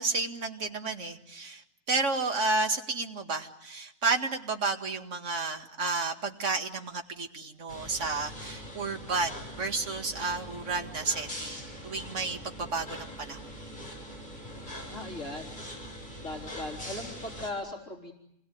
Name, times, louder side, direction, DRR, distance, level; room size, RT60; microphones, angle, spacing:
voice 1, 0.0-13.4, right 3 dB, 75° right, 4 dB, 2.5 m, -31 dB
sound 1, 7.7-17.5, equal, 35° left, 7.7 m, -42 dB
voice 2, 14.9-15.6 16.2-18.1, left 2 dB, 85° left, 1 dB, 4.2 m, -38 dB
28.5 x 21.5 x 9.4 m, 0.80 s
omnidirectional pair, 1.3 m